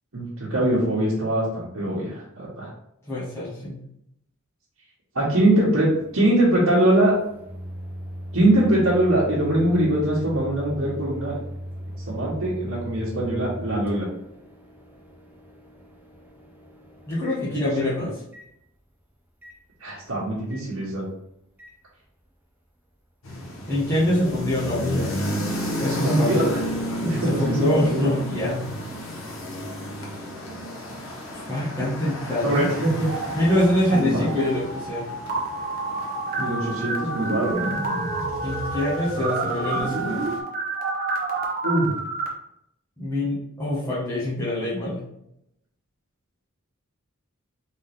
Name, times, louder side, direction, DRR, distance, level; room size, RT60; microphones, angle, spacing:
voice 1, 0.1-2.7 5.1-7.1 8.3-11.3 12.1-14.1 17.8-17.9 19.8-21.0 25.8-26.6 27.0-28.1 32.4-33.1 33.9-34.3 36.4-37.7 41.6-41.9, right 1 dB, 75° right, -9 dB, 1.4 m, -22 dB
voice 2, 3.1-3.8 17.1-18.1 23.7-25.1 25.8-26.5 27.2-28.7 31.3-32.7 33.3-35.1 38.4-40.2 43.0-45.0, left 1 dB, 10° left, -10 dB, 1.3 m, -25 dB
Microwave oven, 5.3-17.9 18.3-18.5 19.4-19.6 20.5-20.7 21.6-21.7, equal, 10° right, 0.6 m, -38 dB
sound 1, 23.2-40.4, equal, 65° left, 1.0 m, -33 dB
sound 2, 33.0-34.0 34.3-42.3, right 3 dB, 40° right, 0.9 m, -29 dB
3.9 x 3.8 x 3.4 m, 0.77 s
head